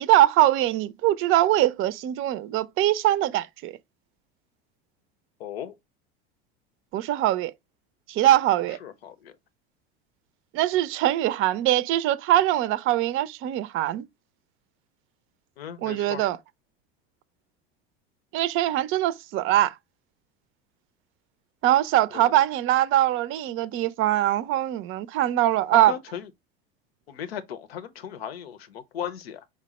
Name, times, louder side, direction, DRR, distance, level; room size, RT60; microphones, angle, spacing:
voice 1, 0.0-3.7 6.9-7.5 8.1-8.8 10.5-14.0 15.8-16.4 18.3-19.7 21.6-25.9, right 13 dB, 45° right, 0.5 m, -22 dB
voice 2, 5.4-5.7 8.8-9.3 15.6-16.2 22.1-22.3 25.8-26.3 27.1-29.5, left 9 dB, 85° left, 0.7 m, -36 dB
5.0 x 2.1 x 4.1 m
hypercardioid pair, 80°, 30 cm